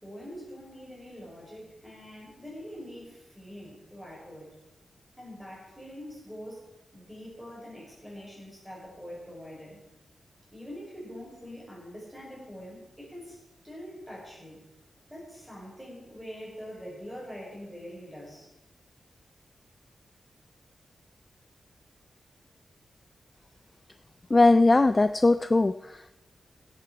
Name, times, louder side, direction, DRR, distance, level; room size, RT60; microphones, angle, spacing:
voice 1, 0.0-4.5 5.2-6.6 6.9-9.8 10.5-13.4 13.6-14.6 15.1-18.5, equal, ahead, -4 dB, 5.3 m, -44 dB
voice 2, 24.3-26.1, left 2 dB, 25° left, 12 dB, 0.3 m, -20 dB
16.0 x 8.6 x 4.7 m, 0.97 s
wide cardioid pair, 125°, 0 cm